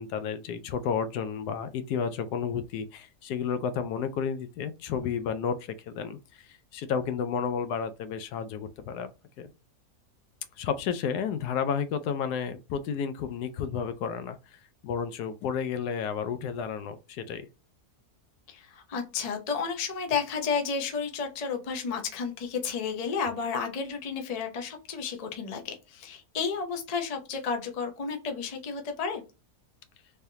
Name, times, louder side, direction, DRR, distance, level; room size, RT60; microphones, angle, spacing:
voice 1, 0.0-5.6 5.9-6.2 6.7-9.1 9.4-9.5 10.6-14.4 14.8-17.5, left 7 dB, 80° left, 1.1 m, -31 dB
voice 2, 18.5-29.2, left 5 dB, 40° left, 0.5 m, -32 dB
3.4 x 3.3 x 2.7 m
omnidirectional pair, 1.7 m